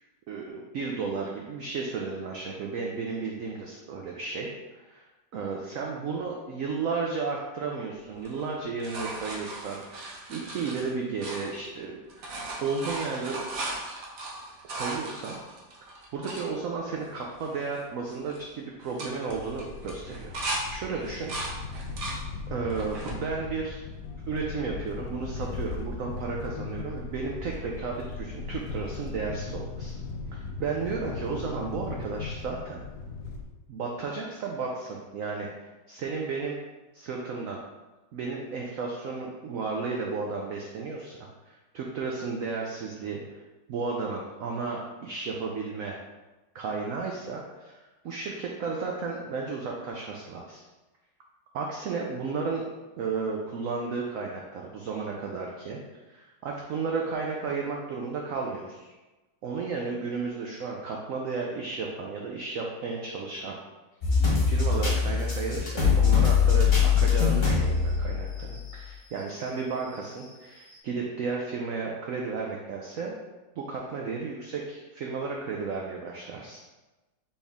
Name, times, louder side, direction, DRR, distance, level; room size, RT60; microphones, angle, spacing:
voice 1, 0.3-5.1 5.3-13.5 14.6-15.4 16.1-21.7 22.5-23.8 24.3-30.0 30.3-32.8 33.7-35.5 35.9-36.6 36.9-37.6 38.1-43.4 43.7-46.0 46.5-50.6 51.5-52.7 53.0-55.8 56.1-58.9 59.4-63.6 64.4-73.1 73.6-76.6, right 4 dB, 80° right, 0 dB, 0.7 m, -33 dB
sound 1, 8.2-11.8 12.1-16.5 17.0-17.1 17.3-17.8 18.1-18.4 18.8-20.6 21.0-22.2 22.7-23.2 23.8-24.6 26.2-26.3, right 2 dB, 55° right, 1.1 m, -37 dB
sound 2, 19.3-33.4, left 4 dB, 70° left, 0.9 m, -38 dB
sound 3, 64.0-68.7 69.2-69.3 70.2-70.3, left 6 dB, 35° left, 1.3 m, -22 dB
4.3 x 3.5 x 3.5 m, 1.1 s
omnidirectional pair, 2.0 m